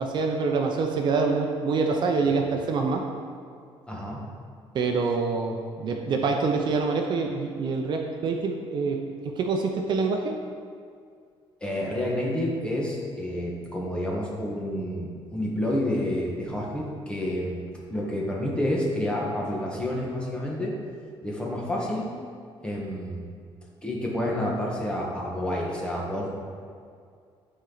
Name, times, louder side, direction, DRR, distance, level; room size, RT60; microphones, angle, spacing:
voice 1, 0.0-3.1 4.7-10.3, right 4 dB, 50° right, 3 dB, 0.6 m, -26 dB
voice 2, 3.9-4.2 11.6-17.6 17.9-20.7 21.2-22.1 22.6-23.3 23.8-26.3, left 1 dB, 10° left, -3 dB, 1.3 m, -29 dB
11.0 x 4.4 x 3.9 m, 2.2 s
cardioid pair, 150°, 10 cm